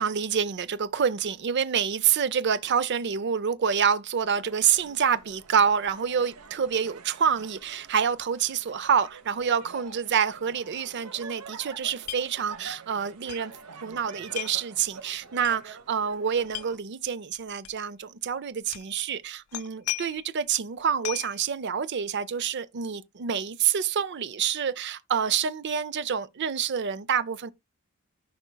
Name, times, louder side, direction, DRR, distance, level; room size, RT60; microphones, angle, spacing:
voice 1, 0.0-13.5 13.8-27.5, right 7 dB, 50° right, 0.5 m, -27 dB
sound 1, 4.2-16.8, right 5 dB, 85° right, 1.1 m, -47 dB
sound 2, 12.1-12.2 12.5-12.6 13.3-13.4 14.4-14.6 15.4-15.6 16.5-16.7 17.6-17.7 18.7-18.9 19.5-20.3 21.0-21.4, left 15 dB, 80° left, 0.4 m, -35 dB
14.0 x 5.1 x 2.2 m
head